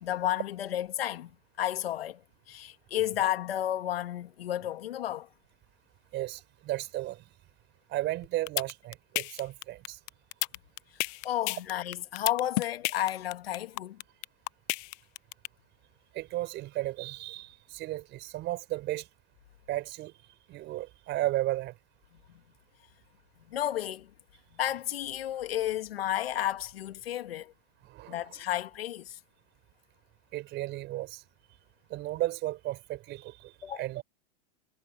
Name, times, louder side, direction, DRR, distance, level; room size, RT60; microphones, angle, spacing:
voice 1, 0.0-5.3 11.2-14.0 23.5-24.1 24.6-27.5 28.1-29.2 33.6-33.8, left 12 dB, 90° left, 2.4 m, -32 dB
voice 2, 6.1-7.2 7.9-10.0 16.1-19.1 19.7-20.1 20.5-21.7 27.8-28.2 30.3-31.2 31.9-34.0, right 16 dB, 40° right, 4.5 m, -34 dB
sound 1, 8.2-15.5, left 26 dB, 50° left, 0.7 m, -31 dB
supercardioid pair, 130°, 29 cm